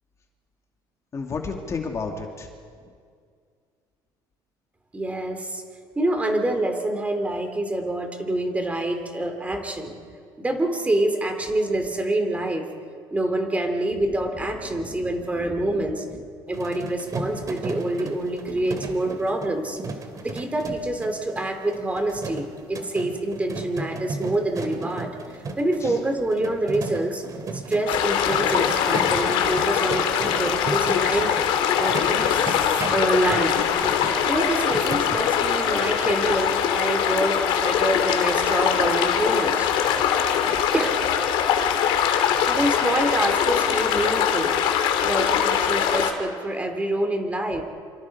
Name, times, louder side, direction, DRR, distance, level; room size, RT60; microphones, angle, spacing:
voice 1, 1.1-2.5 14.7-15.1 15.6-15.8 18.5-18.8 25.8-25.9 29.4-29.5 40.4-40.6 47.5-47.6, left 4 dB, 35° left, 2 dB, 2.6 m, -33 dB
voice 2, 4.9-5.6 5.9-10.0 10.4-12.7 13.1-16.0 16.5-19.8 20.2-27.2 27.5-32.6 32.9-33.5 34.2-39.7 40.7-41.0 42.5-44.5 45.0-47.6, right 1 dB, 15° right, 5 dB, 3.1 m, -26 dB
sound 1, 16.5-35.2, right 3 dB, 40° right, 2.9 m, -35 dB
sound 2, 27.9-46.1, left 8 dB, 80° left, 2.6 m, -22 dB
28.0 x 26.5 x 4.9 m, 2.2 s
cardioid pair, 110°, 9 cm